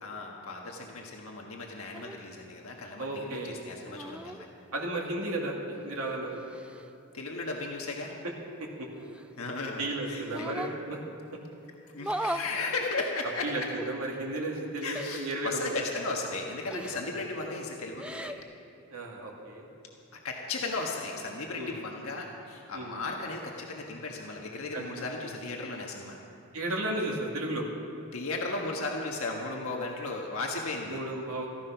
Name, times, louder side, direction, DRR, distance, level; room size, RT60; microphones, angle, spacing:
voice 1, 0.0-4.5 7.1-8.2 9.4-10.7 11.8-13.7 14.8-18.3 20.1-26.2 28.1-31.0, left 3 dB, 70° left, 0 dB, 1.4 m, -35 dB
sound 1, 1.9-2.2 3.9-4.4 5.8-6.9 9.0-9.7 10.2-10.8 12.0-12.5 13.7-13.9 14.9-15.3 16.7-17.2 17.9-18.4, right 1 dB, 5° right, 0.3 m, -38 dB
voice 2, 3.0-3.6 4.7-5.6 5.8-6.4 8.8-8.9 9.8-11.0 13.4-15.9 16.9-17.0 18.9-19.7 21.6-21.8 22.7-22.9 24.7-24.9 25.2-25.3 26.5-27.7 30.9-31.5, right 2 dB, 75° right, -2 dB, 2.5 m, -34 dB
14.5 x 14.5 x 5.9 m, 2.9 s
head